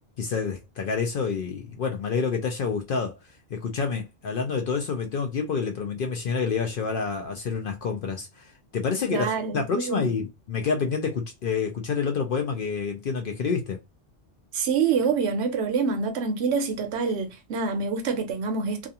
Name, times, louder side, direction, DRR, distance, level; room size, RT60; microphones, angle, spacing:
voice 1, 0.2-3.2 3.5-13.8, left 5 dB, 60° left, 0.6 m, -28 dB
voice 2, 9.1-10.1 14.5-18.9, right 5 dB, 70° right, 0.8 m, -26 dB
2.5 x 2.3 x 2.7 m
omnidirectional pair, 1.2 m